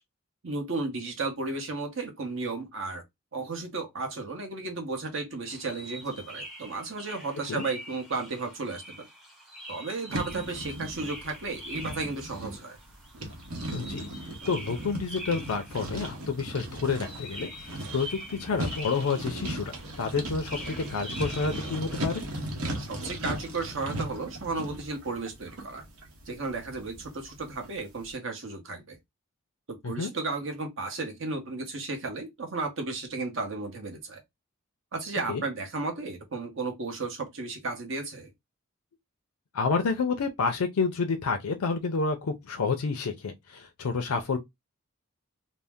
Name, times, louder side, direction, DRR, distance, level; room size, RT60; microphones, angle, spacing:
voice 1, 0.4-3.0 3.3-9.1 9.7-12.8 22.8-25.9 26.3-29.0 29.7-34.2 34.9-38.3, right 3 dB, 60° right, 0.9 m, -34 dB
sound 1, 5.5-22.1, equal, ahead, 0.5 m, -45 dB
sound 2, 10.1-27.7, right 1 dB, 85° right, 0.9 m, -37 dB
voice 2, 13.7-14.1 14.5-22.2 29.8-30.1 35.3-35.4 39.5-44.4, left 4 dB, 85° left, 0.5 m, -29 dB
2.7 x 2.0 x 3.4 m
head